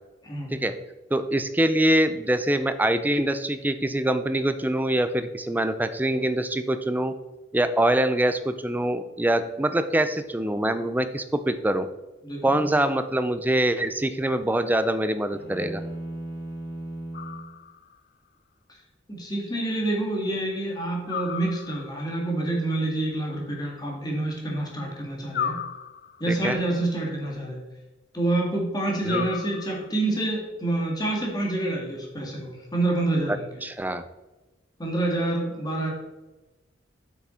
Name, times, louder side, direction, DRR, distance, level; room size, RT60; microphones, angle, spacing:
voice 1, 0.2-0.6 12.2-12.7 19.1-25.6 26.2-27.6 28.1-33.5 34.8-35.9, right 2 dB, 20° left, -1 dB, 1.9 m, -27 dB
voice 2, 1.1-7.1 7.5-11.9 12.4-15.8 26.3-26.6 29.0-29.3 33.6-34.0, right 1 dB, 10° right, 10 dB, 0.4 m, -24 dB
sound 1, 15.3-17.6, right 1 dB, 85° left, 1.9 m, -36 dB
sound 2, 17.1-18.0 21.1-22.1 25.3-26.4 29.1-30.1, left 7 dB, 50° left, 0.4 m, -34 dB
7.8 x 6.0 x 4.3 m, 1.1 s
head